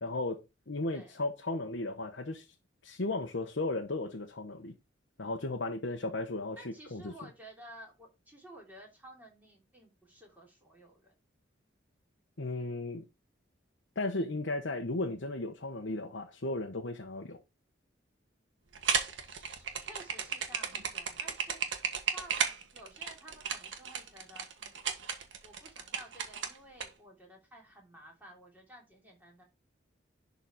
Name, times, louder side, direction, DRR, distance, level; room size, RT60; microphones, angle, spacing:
voice 1, 0.0-2.5 2.8-4.7 5.2-7.1 12.4-13.0 14.0-17.4, left 2 dB, 65° left, 1.0 m, -35 dB
voice 2, 6.6-11.1 19.2-25.1 25.4-29.4, equal, 10° right, 3.1 m, -53 dB
sound 1, 18.7-26.9, right 7 dB, 70° right, 1.5 m, -34 dB
11.0 x 4.1 x 4.5 m
head